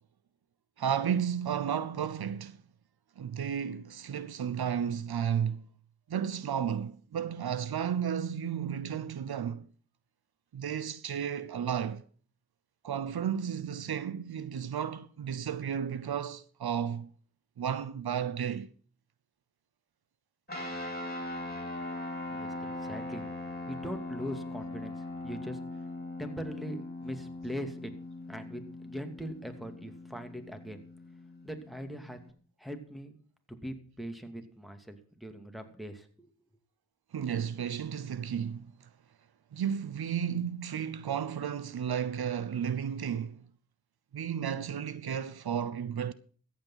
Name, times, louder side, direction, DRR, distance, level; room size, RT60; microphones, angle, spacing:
voice 1, 0.8-2.6 3.2-5.7 6.1-9.7 10.5-12.0 12.8-17.1 17.6-18.7 37.1-38.9 39.5-43.4 44.1-46.1, right 8 dB, 85° right, 0.8 m, -33 dB
sound 1, 20.5-32.3, left 2 dB, 25° left, 4.9 m, -40 dB
voice 2, 22.3-23.3 23.7-25.6 26.2-27.9 28.3-30.8 31.4-32.2 32.6-33.2 33.5-36.3, equal, ahead, 2.5 m, -41 dB
14.0 x 8.6 x 5.7 m
cardioid pair, 45°, 37 cm